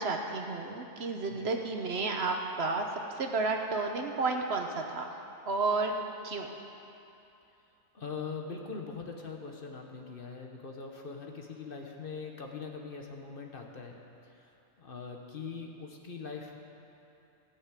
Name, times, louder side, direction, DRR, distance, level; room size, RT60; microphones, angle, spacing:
voice 1, 0.0-2.8 3.2-5.1 5.4-5.9 6.2-6.5, right 3 dB, 55° right, 3 dB, 1.0 m, -31 dB
voice 2, 7.9-14.5 14.8-16.6, left 5 dB, 45° left, 2 dB, 1.1 m, -42 dB
15.5 x 5.7 x 8.2 m, 2.8 s
omnidirectional pair, 1.4 m